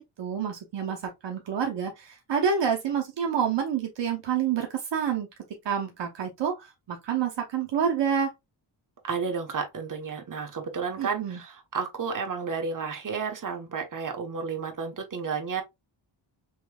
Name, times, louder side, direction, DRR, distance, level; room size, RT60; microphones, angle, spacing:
voice 1, 0.2-5.3 5.6-8.3 11.0-11.4, right 7 dB, 65° right, 1.0 m, -28 dB
voice 2, 9.0-15.6, right 5 dB, 45° right, 1.2 m, -32 dB
5.4 x 3.1 x 2.3 m
wide cardioid pair, 105°, 46 cm